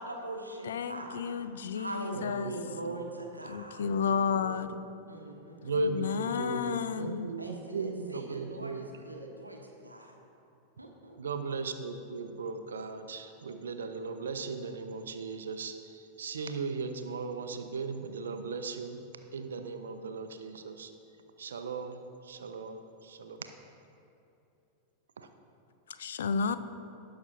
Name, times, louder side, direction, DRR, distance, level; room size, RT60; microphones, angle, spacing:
voice 1, 0.0-1.2 1.7-3.8 5.1-5.7 7.4-10.1 10.8-11.2, right 1 dB, 85° right, 1 dB, 0.9 m, -41 dB
voice 2, 0.6-2.5 3.5-4.7 5.8-7.3 26.0-26.6, left 6 dB, 65° left, 12 dB, 0.4 m, -32 dB
voice 3, 2.1-3.0 3.8-4.8 5.6-9.1 11.2-19.0 19.3-20.9 21.4-23.5 25.2-25.3, right 3 dB, 65° right, 8 dB, 0.6 m, -37 dB
17.5 x 6.0 x 2.7 m, 2.8 s
figure-of-eight pair, 90°, 0 cm